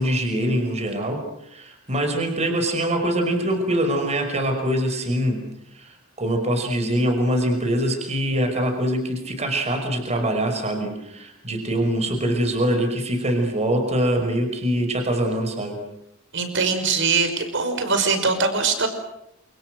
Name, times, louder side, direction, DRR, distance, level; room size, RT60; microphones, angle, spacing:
voice 1, 0.0-5.4 5.7-15.8, right 1 dB, 35° right, 5 dB, 5.6 m, -24 dB
voice 2, 16.3-18.9, right 4 dB, 65° right, 8 dB, 5.5 m, -22 dB
29.5 x 28.0 x 6.5 m, 0.80 s
head